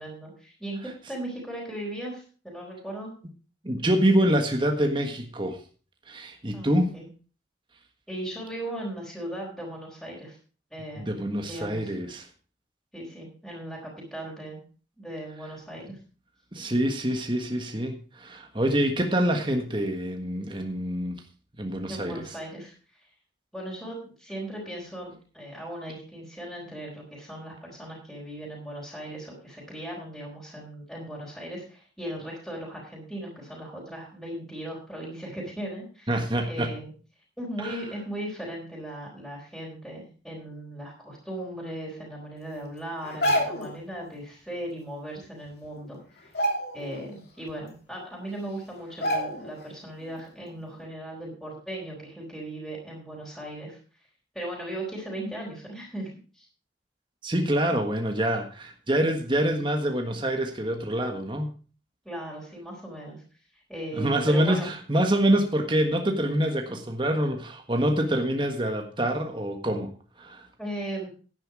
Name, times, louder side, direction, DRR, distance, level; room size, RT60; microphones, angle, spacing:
voice 1, 0.0-3.1 6.5-7.1 8.1-10.4 10.7-11.2 11.5-11.9 12.9-13.8 14.1-14.6 15.0-16.0 21.9-23.1 23.5-36.9 37.4-53.8 54.3-56.5 62.0-63.2 63.5-64.7 70.6-71.1, right 1 dB, ahead, -5 dB, 4.2 m, -38 dB
voice 2, 3.6-5.6 6.1-7.0 11.0-12.2 16.5-21.2 21.6-22.2 36.1-36.7 37.6-37.8 57.2-61.5 64.0-69.9 70.2-70.5, right 1 dB, 25° right, 4 dB, 1.5 m, -26 dB
sound 1, 43.0-43.8 45.2-45.3 45.6-45.9 46.2-47.1 47.5-47.6 48.3-48.4 49.0-49.6 50.0-50.2, equal, 55° left, 2.9 m, -28 dB
11.0 x 10.5 x 4.9 m, 0.38 s
head